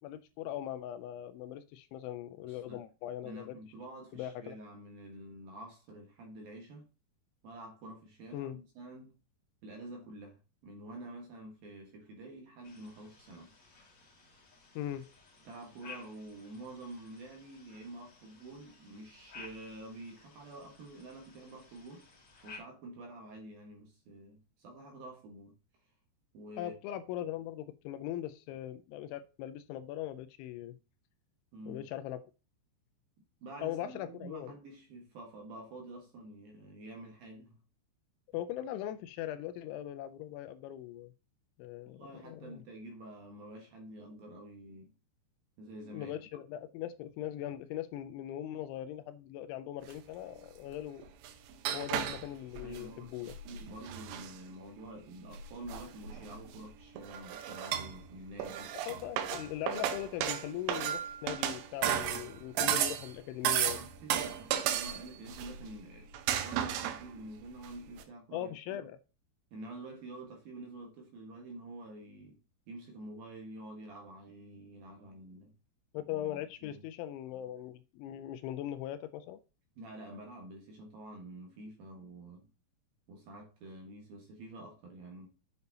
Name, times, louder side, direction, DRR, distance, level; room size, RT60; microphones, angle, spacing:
voice 1, 0.0-3.6 4.1-4.6 8.3-8.6 14.8-15.1 26.6-30.8 31.7-32.2 33.6-34.6 38.3-41.1 41.6-42.6 45.8-51.0 51.7-53.3 58.7-63.8 68.3-69.0 75.9-79.4, left 12 dB, 85° left, 2.8 m, -40 dB
voice 2, 2.4-2.8 3.2-6.9 7.4-9.1 9.6-13.5 15.4-22.1 22.4-25.5 26.3-26.7 31.5-31.8 33.4-37.6 41.8-44.9 45.6-46.1 52.6-53.1 53.4-58.8 63.6-66.1 66.4-68.9 69.5-72.4 72.7-75.5 76.3-76.4 76.6-76.8 79.8-82.5 83.1-85.3, right 2 dB, 65° right, 2.6 m, -48 dB
sound 1, 12.6-22.6, left 4 dB, 35° left, 1.8 m, -55 dB
sound 2, 49.9-50.0 51.0-52.9 53.3-54.4 55.3-56.6 57.0-58.1 58.4-63.1 63.4-65.8 66.1-67.2 67.6-67.7 68.0-68.1, right 10 dB, 85° right, 3.5 m, -34 dB
8.0 x 6.9 x 2.7 m
omnidirectional pair, 5.6 m